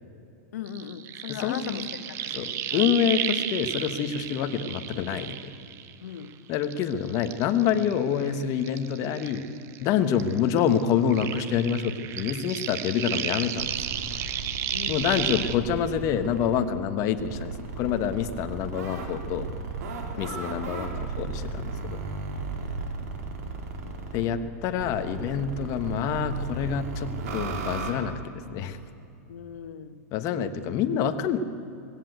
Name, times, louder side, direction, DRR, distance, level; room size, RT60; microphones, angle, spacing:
voice 1, 0.5-2.9 6.0-6.4 14.7-15.5 20.1-20.4 29.3-30.1, left 8 dB, 80° left, 10 dB, 1.3 m, -39 dB
sound 1, 0.7-6.2 6.5-9.9 10.1-15.5, right 10 dB, 35° right, 1.1 m, -33 dB
voice 2, 1.3-1.9 2.3-5.4 6.5-9.4 9.8-13.7 14.9-19.5 20.2-22.0 24.1-28.8 30.1-31.4, left 8 dB, 40° left, 9 dB, 1.4 m, -27 dB
sound 2, 13.5-16.6 17.2-24.3 24.8-27.9, right 4 dB, 65° right, 3.7 m, -35 dB
20.5 x 16.5 x 8.1 m, 2.7 s
hypercardioid pair, 135°, 9 cm